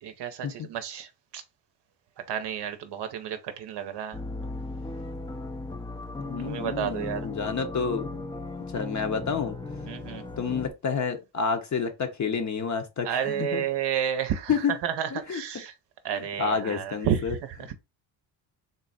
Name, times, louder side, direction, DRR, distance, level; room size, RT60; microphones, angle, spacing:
voice 1, 0.0-1.4 2.3-4.2 6.4-7.3 9.9-10.2 13.0-15.7 16.0-17.7, right 9 dB, 60° right, 0.7 m, -31 dB
sound 1, 4.1-10.7, left 2 dB, 10° left, 0.5 m, -37 dB
voice 2, 6.2-8.2 8.7-9.6 10.4-13.6 14.5-14.7 15.1-15.4 16.1-17.3, left 6 dB, 35° left, 0.8 m, -29 dB
3.8 x 2.1 x 4.0 m
supercardioid pair, 75°, 47 cm